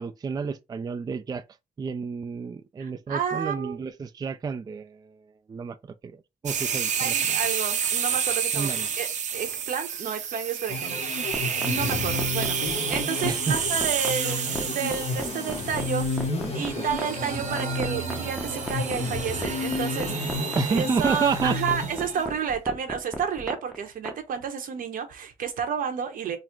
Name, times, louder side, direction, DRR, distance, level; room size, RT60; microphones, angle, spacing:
voice 1, 0.0-1.4 1.8-5.2 5.5-5.8 6.0-7.4 8.5-8.9 13.2-13.6 16.8-16.9 20.5-21.6, right 5 dB, 30° right, 0.3 m, -30 dB
voice 2, 2.8-3.9 7.0-8.7 9.0-9.1 9.3-11.3 11.6-12.6 12.9-16.3 16.5-20.3 20.7-26.4, right 7 dB, 85° right, 0.9 m, -31 dB
sound 1, 6.5-22.2, right 7 dB, 60° right, 0.6 m, -30 dB
sound 2, 10.7-22.5, left 3 dB, 50° left, 1.0 m, -32 dB
sound 3, 11.3-24.2, equal, ahead, 0.8 m, -34 dB
3.9 x 2.0 x 4.4 m
cardioid pair, 115°, 14 cm